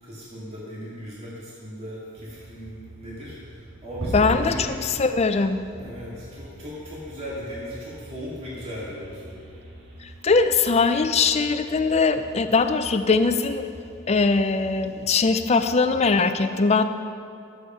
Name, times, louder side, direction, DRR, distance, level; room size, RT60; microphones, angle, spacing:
voice 1, 0.0-4.8 5.8-9.6, equal, 30° right, -8 dB, 2.2 m, -37 dB
sound 1, 2.2-16.0, right 1 dB, 60° right, 1.6 m, -47 dB
sound 2, 3.9-10.6 10.9-11.2 11.6-11.8 12.3-12.5, equal, 75° right, 2.5 m, -39 dB
voice 2, 4.1-4.7 5.0-5.6 10.2-13.6 14.1-16.8, left 4 dB, 30° left, 9 dB, 0.5 m, -21 dB
12.5 x 8.1 x 4.5 m, 2.4 s
head